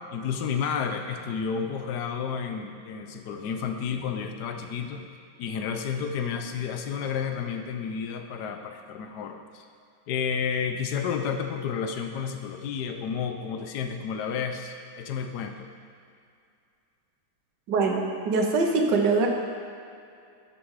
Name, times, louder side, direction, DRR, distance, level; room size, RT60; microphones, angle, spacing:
voice 1, 0.1-5.1 5.4-9.7 10.1-15.7, left 6 dB, 65° left, 6 dB, 1.2 m, -31 dB
voice 2, 17.7-19.3, right 4 dB, 65° right, 1 dB, 1.6 m, -23 dB
11.5 x 6.2 x 4.8 m, 2.4 s
omnidirectional pair, 2.1 m